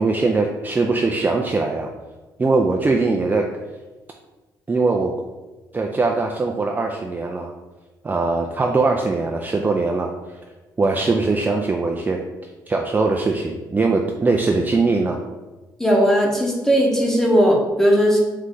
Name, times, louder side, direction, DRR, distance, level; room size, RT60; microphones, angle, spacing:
voice 1, 0.0-1.9 2.4-3.5 4.7-5.1 5.7-7.5 8.0-10.1 10.8-12.2 12.7-15.2, right 3 dB, 20° right, 1 dB, 0.4 m, -21 dB
voice 2, 15.8-18.2, equal, 5° left, -2 dB, 1.0 m, -17 dB
3.8 x 3.2 x 3.7 m, 1.2 s
cardioid pair, 90°, 8 cm